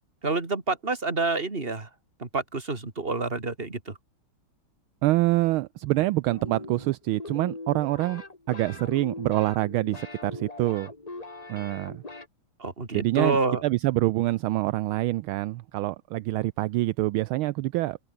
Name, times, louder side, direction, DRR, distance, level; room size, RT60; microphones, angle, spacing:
voice 1, 0.2-1.9 2.2-4.0 12.6-13.6, right 3 dB, 25° right, 3.1 m, -28 dB
voice 2, 5.0-8.2 8.5-10.9 11.5-12.0 12.9-13.4 13.6-18.0, right 17 dB, 75° right, 1.4 m, -26 dB
sound 1, 6.3-12.3, left 3 dB, 20° left, 1.8 m, -41 dB
omnidirectional pair, 2.4 m